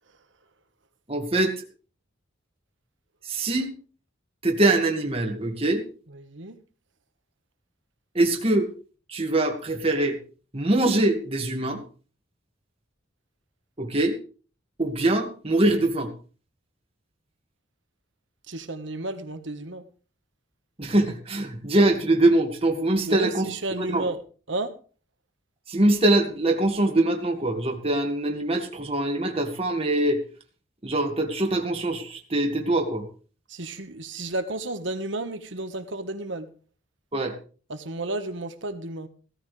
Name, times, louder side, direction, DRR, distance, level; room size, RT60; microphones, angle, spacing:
voice 1, 1.1-1.5 3.3-3.7 4.4-5.8 8.1-8.7 9.1-10.2 10.5-11.8 13.8-14.2 14.8-16.1 20.8-23.5 23.8-24.1 25.7-30.2 30.8-33.1 37.1-37.3, right 2 dB, 30° right, 3 dB, 2.1 m, -23 dB
voice 2, 6.1-6.6 18.5-19.8 23.1-24.2 24.5-24.7 33.5-36.5 37.7-39.1, right 2 dB, 70° right, 9 dB, 1.5 m, -32 dB
17.0 x 13.5 x 3.4 m, 0.38 s
head